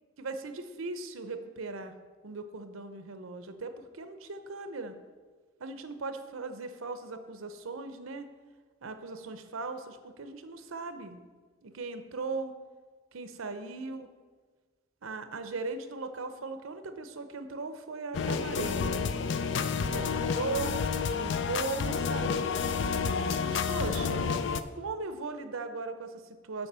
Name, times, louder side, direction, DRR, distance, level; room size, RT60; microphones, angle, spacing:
voice 1, 0.2-1.9 2.2-4.9 5.6-8.3 8.8-11.2 11.6-12.6 13.1-14.1 15.0-19.0 19.9-20.8 21.1-22.6 23.4-24.3 24.7-26.7, right 3 dB, 85° right, 8 dB, 0.7 m, -38 dB
sound 1, 18.1-24.6, left 5 dB, 60° left, 0.4 m, -30 dB
7.1 x 5.4 x 6.7 m, 1.4 s
head